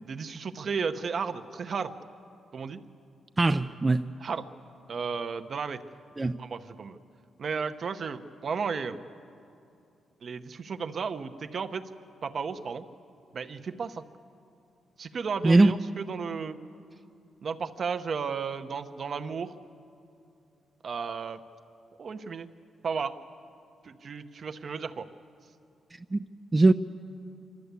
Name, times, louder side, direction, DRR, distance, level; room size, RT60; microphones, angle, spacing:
voice 1, 0.0-1.9 2.5-2.8 4.2-4.5 4.9-5.8 6.3-7.0 7.4-9.0 10.2-11.8 12.2-12.8 13.3-14.0 15.0-16.6 17.4-19.5 20.8-21.4 22.0-22.5 22.8-23.1 23.8-25.1, right 5 dB, 50° right, 8 dB, 0.8 m, -33 dB
voice 2, 3.4-4.0 6.2-6.3 15.4-15.7 26.1-26.2 26.5-26.7, right 2 dB, 20° right, 7 dB, 0.4 m, -20 dB
25.0 x 13.0 x 8.2 m, 2.6 s
cardioid pair, 100°, 0 cm